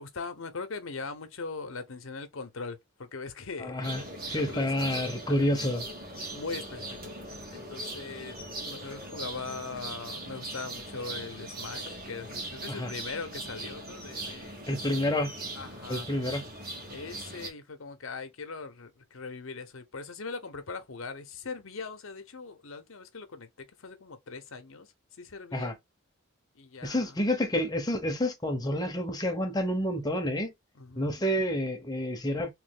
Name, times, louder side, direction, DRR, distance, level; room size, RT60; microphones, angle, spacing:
voice 1, 0.0-3.9 4.3-4.7 5.3-5.5 6.3-7.1 7.5-8.4 8.6-14.7 15.6-16.1 16.9-24.9 25.2-25.7 26.5-27.2 30.8-31.1, left 4 dB, 70° left, 0.8 m, -40 dB
voice 2, 3.6-4.0 4.3-5.8 12.7-12.9 14.7-15.3 15.9-16.4 25.5-25.7 26.8-30.5 31.0-32.5, left 1 dB, 20° left, 0.9 m, -29 dB
sound 1, 3.8-17.5, right 2 dB, 45° right, 1.4 m, -40 dB
3.2 x 3.1 x 3.5 m
head